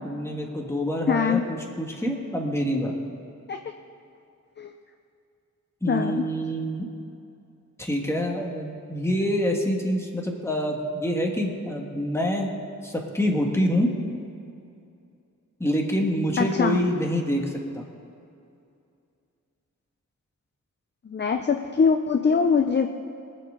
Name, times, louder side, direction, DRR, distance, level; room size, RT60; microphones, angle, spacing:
voice 1, 0.0-2.9 5.8-6.9 7.8-12.5 12.8-13.9 15.6-17.8, equal, 10° left, 0 dB, 1.6 m, -26 dB
voice 2, 1.1-1.5 3.5-3.6 4.6-4.7 5.9-6.2 16.4-16.8 21.1-22.9, left 5 dB, 35° left, 6 dB, 0.5 m, -22 dB
22.5 x 7.6 x 3.8 m, 2.6 s
wide cardioid pair, 135°, 31 cm